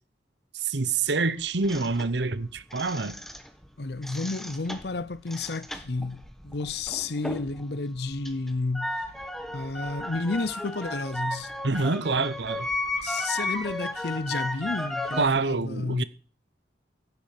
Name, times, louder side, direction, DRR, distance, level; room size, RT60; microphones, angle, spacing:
voice 1, 0.5-3.2 11.6-12.7 15.1-16.0, right 3 dB, 75° right, 1.0 m, -26 dB
sound 1, 1.6-3.7 3.9-7.6 8.0-15.3, left 1 dB, ahead, 1.2 m, -34 dB
voice 2, 3.8-9.0 9.5-11.5 13.0-16.0, left 3 dB, 65° left, 0.7 m, -31 dB
16.0 x 9.5 x 6.7 m
head